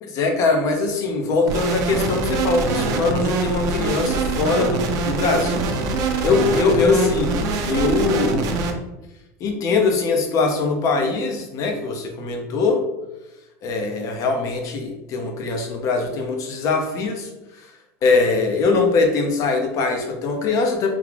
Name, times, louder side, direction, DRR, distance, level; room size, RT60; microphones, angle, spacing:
voice 1, 0.0-5.7 6.2-8.5 9.4-12.8 13.6-17.3 17.5-17.7 18.0-21.0, left 3 dB, 45° left, 3 dB, 0.8 m, -22 dB
sound 1, 1.5-8.7, right 3 dB, 50° right, 0.6 m, -24 dB
3.7 x 2.4 x 3.3 m, 0.99 s
supercardioid pair, 110°, 8 cm